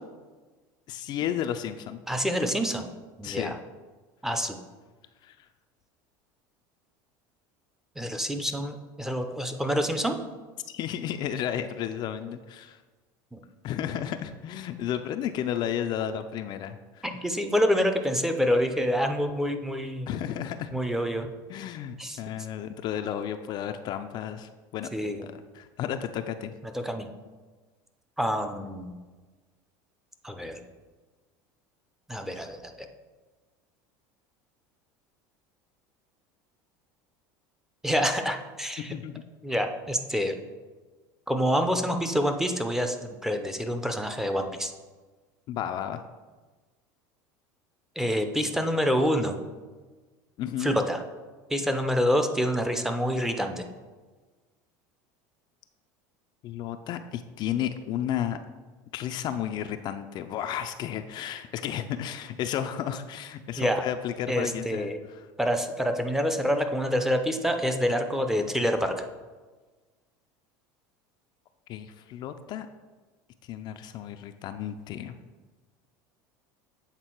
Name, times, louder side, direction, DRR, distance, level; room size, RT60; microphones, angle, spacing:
voice 1, 0.9-2.0 3.2-3.6 5.2-5.4 10.7-12.8 13.6-17.1 20.1-20.7 21.5-24.9 25.2-26.5 38.8-39.2 45.5-46.1 50.4-50.8 56.4-58.4 58.9-65.3 71.7-72.7 73.5-75.2, left 10 dB, 50° left, 8 dB, 0.4 m, -33 dB
voice 2, 2.1-2.9 3.2-3.6 4.2-4.6 8.0-10.2 13.3-13.4 17.0-20.1 20.7-21.3 22.0-22.2 24.9-25.3 26.6-27.1 28.2-28.9 30.2-30.6 32.1-32.9 37.8-38.9 39.4-40.3 41.3-44.7 48.0-49.4 50.6-51.0 51.5-53.7 63.6-63.8 64.3-65.0 65.4-68.9, equal, 5° right, 6 dB, 0.6 m, -27 dB
8.1 x 3.6 x 4.5 m, 1.3 s
supercardioid pair, 110°, 10 cm